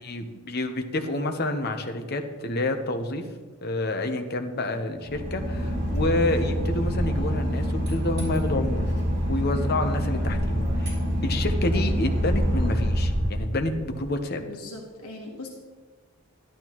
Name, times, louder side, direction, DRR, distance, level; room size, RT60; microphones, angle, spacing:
voice 1, 0.0-3.2 3.6-8.9 9.3-11.0 11.2-14.4, left 2 dB, 45° left, 6 dB, 0.9 m, -28 dB
Boat Water vehicle / Engine, 5.0-14.0, equal, 50° right, 3.9 m, -26 dB
voice 2, 14.4-15.5, left 2 dB, 90° left, -1 dB, 1.4 m, -40 dB
11.5 x 11.5 x 3.1 m, 1.4 s
head